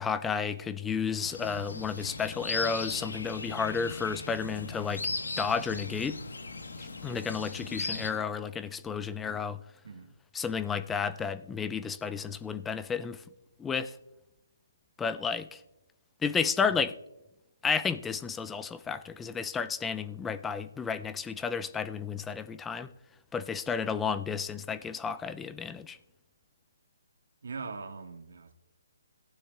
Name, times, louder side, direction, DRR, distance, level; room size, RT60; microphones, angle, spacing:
voice 1, 0.0-5.1 5.4-6.2 6.8-9.6 10.3-13.2 13.6-13.9 15.0-15.6 16.2-17.0 17.6-22.9 23.3-26.0, left 6 dB, 10° left, 0.3 m, -32 dB
sound 1, 1.2-8.1, left 3 dB, 85° left, 1.2 m, -38 dB
voice 2, 27.4-28.5, right 4 dB, 70° right, 1.5 m, -41 dB
18.0 x 9.1 x 2.3 m
hypercardioid pair, 160°, 0 cm